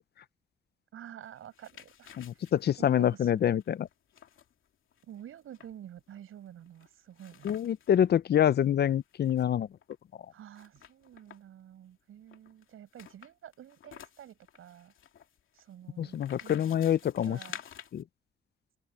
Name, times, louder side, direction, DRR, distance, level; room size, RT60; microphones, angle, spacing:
voice 1, 0.9-3.5 5.0-7.6 10.3-14.9 15.5-17.6, right 10 dB, 90° right, 7.2 m, -50 dB
sound 1, 1.3-8.0 8.4-8.5 8.7-10.0 10.5-11.6 12.3-18.0, left 9 dB, 75° left, 2.7 m, -51 dB
voice 2, 2.2-3.9 7.4-9.7 16.0-17.4 17.9-18.0, left 10 dB, 50° left, 0.5 m, -26 dB
open air
wide cardioid pair, 145°, 21 cm